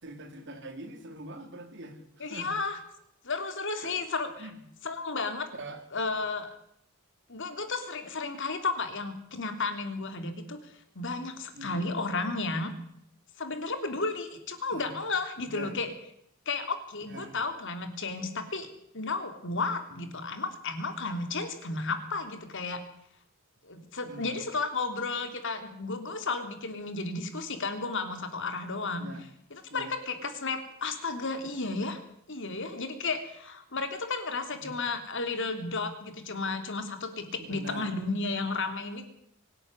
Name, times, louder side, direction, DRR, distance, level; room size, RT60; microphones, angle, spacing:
voice 1, 0.0-2.5 3.8-4.0 4.4-4.6 5.5-5.8 11.5-11.8 14.7-14.9 15.4-15.7 17.1-17.4 19.9-20.0 24.1-24.4 28.9-29.2 29.7-30.0 34.5-34.7 37.2-37.9, right 1 dB, 55° right, 6 dB, 3.7 m, -43 dB
voice 2, 2.2-2.8 3.2-4.5 4.8-5.5 5.9-6.5 7.3-12.7 13.4-15.9 16.4-18.7 18.9-22.8 23.6-29.1 29.5-32.0 32.3-39.0, left 3 dB, 55° left, 7 dB, 3.2 m, -33 dB
24.0 x 12.0 x 9.8 m, 0.74 s
head